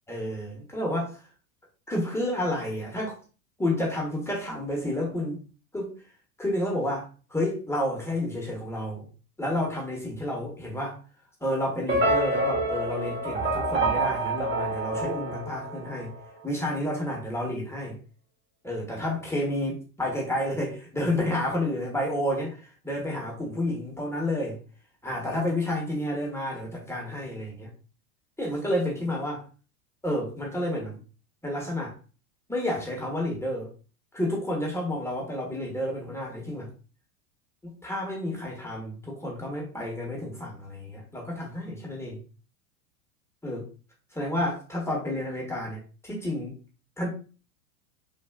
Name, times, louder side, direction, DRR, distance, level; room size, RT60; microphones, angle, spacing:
voice 1, 0.1-1.2 1.9-3.2 3.6-5.4 5.7-5.9 6.4-9.0 9.4-10.9 11.4-16.1 16.4-18.0 18.6-24.6 25.0-27.7 28.4-29.4 30.0-31.0 31.4-31.9 32.5-33.7 34.1-36.7 37.6-42.2 43.4-43.7 44.1-46.5 47.0-47.1, left 1 dB, 5° left, -2 dB, 0.8 m, -30 dB
sound 1, 11.9-16.2, right 2 dB, 25° right, 0.9 m, -27 dB
3.3 x 2.4 x 2.2 m, 0.36 s
hypercardioid pair, 100°, 44 cm